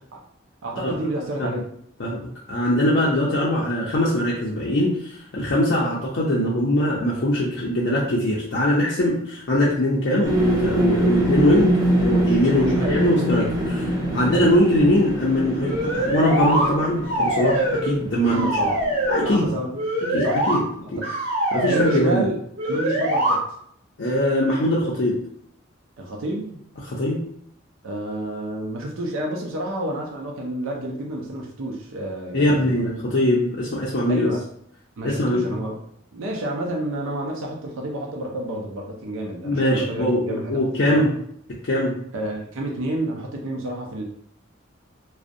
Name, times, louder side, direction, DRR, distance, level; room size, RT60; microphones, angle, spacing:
voice 1, 0.6-1.7 12.5-13.1 13.7-14.6 18.2-18.8 19.2-19.8 20.2-20.4 20.8-21.1 21.7-22.4 22.6-23.6 26.0-26.6 27.8-32.8 34.1-34.4 35.0-35.8 36.1-41.1 42.1-44.0, right 1 dB, 75° right, 0 dB, 0.5 m, -30 dB
voice 2, 2.0-13.8 14.1-18.5 19.1-19.5 20.0-20.7 20.9-21.0 21.5-22.3 24.0-25.2 26.8-27.2 32.3-34.3 35.0-35.5 39.4-41.1 41.6-42.0, left 1 dB, 55° left, -5 dB, 0.4 m, -22 dB
sound 1, 10.2-19.5, right 1 dB, 20° right, 0.4 m, -24 dB
sound 2, 15.6-16.7 17.0-18.0 18.2-19.3 19.7-20.6 21.0-22.0 22.6-23.3, right 1 dB, 50° right, 1.2 m, -23 dB
2.5 x 2.0 x 2.5 m, 0.68 s
head